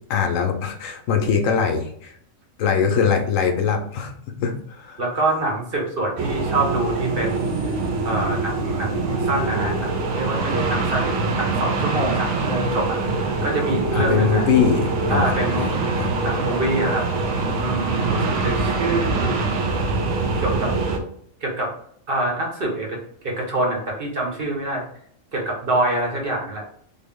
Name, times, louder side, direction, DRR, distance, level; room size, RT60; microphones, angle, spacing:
voice 1, 0.1-2.1 2.6-4.1 4.4-5.0 13.9-16.1, left 6 dB, 75° left, 4 dB, 0.9 m, -22 dB
voice 2, 5.0-7.8 8.0-14.5 15.1-15.7 16.2-17.1 17.6-19.5 20.3-20.7 21.4-21.7 22.1-24.8 25.3-26.6, right 2 dB, 50° right, -1 dB, 0.9 m, -26 dB
sound 1, 6.2-21.0, right 3 dB, 85° right, 1.0 m, -24 dB
3.6 x 2.0 x 3.5 m, 0.63 s
omnidirectional pair, 1.4 m